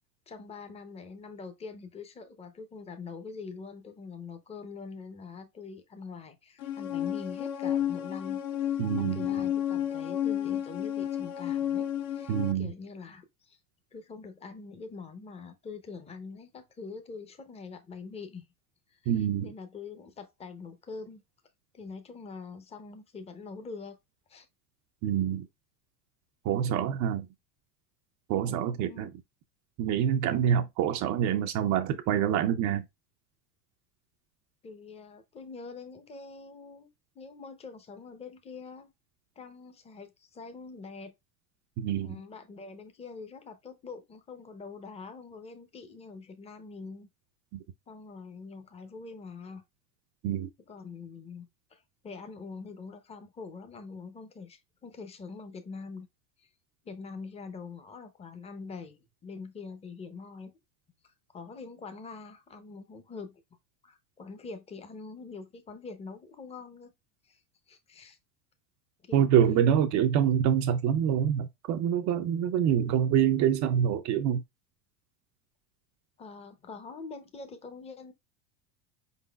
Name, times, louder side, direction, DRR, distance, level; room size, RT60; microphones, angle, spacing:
voice 1, 0.3-13.6 13.9-18.5 18.9-19.0 19.4-21.2 21.7-24.0 24.3-24.5 28.9-29.1 34.6-38.9 39.4-41.1 42.0-47.1 47.9-49.6 50.7-56.1 56.4-56.5 56.8-60.5 61.0-63.4 63.8-66.9 67.2-67.4 67.7-68.2 69.1-69.8 76.2-78.1, left 4 dB, 15° left, 0.6 m, -44 dB
sound 1, 6.6-12.5, left 10 dB, 60° left, 1.0 m, -31 dB
voice 2, 8.8-9.3 12.3-12.7 19.1-19.5 25.0-25.5 26.4-27.3 28.3-29.1 29.8-32.8 41.8-42.2 47.5-47.6 50.2-50.5 69.1-74.4, right 9 dB, 40° right, 0.5 m, -26 dB
4.7 x 4.0 x 2.3 m
supercardioid pair, 120°, 48 cm